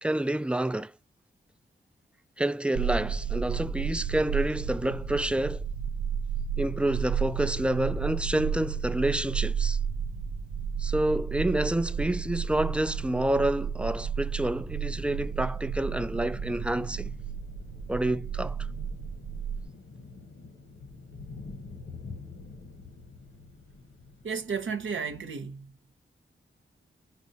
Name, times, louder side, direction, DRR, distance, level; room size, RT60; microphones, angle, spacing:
voice 1, 0.0-0.9 2.4-5.6 6.6-9.8 10.8-17.1 17.9-18.6, right 1 dB, 5° right, 0.3 m, -28 dB
sound 1, 2.7-19.6, right 7 dB, 90° right, 0.5 m, -32 dB
sound 2, 14.8-25.3, left 3 dB, 80° left, 1.1 m, -47 dB
voice 2, 24.2-25.7, right 5 dB, 70° right, 0.8 m, -33 dB
4.6 x 2.1 x 2.7 m
cardioid pair, 45°, 21 cm